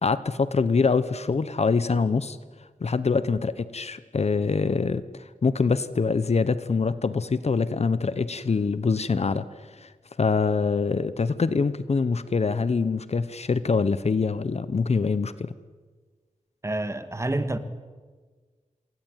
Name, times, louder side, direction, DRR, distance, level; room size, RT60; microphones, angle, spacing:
voice 1, 0.0-2.4 2.8-9.5 9.8-9.9 10.2-15.5, left 4 dB, 50° left, 1.0 m, -24 dB
voice 2, 16.6-17.6, right 2 dB, 20° right, 1.8 m, -28 dB
27.5 x 22.5 x 9.1 m
wide cardioid pair, 115°, 14 cm